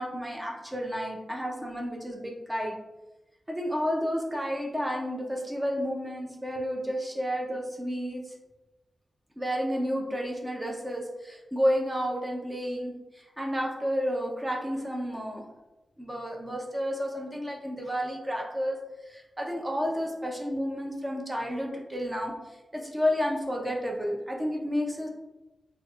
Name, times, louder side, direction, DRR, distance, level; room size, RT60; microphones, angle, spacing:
voice 1, 0.0-2.8 3.5-8.3 9.4-15.5 16.0-18.8 19.1-25.1, equal, 15° right, 0 dB, 0.5 m, -31 dB
4.5 x 2.3 x 2.3 m, 1.0 s
wide cardioid pair, 85°, 0 cm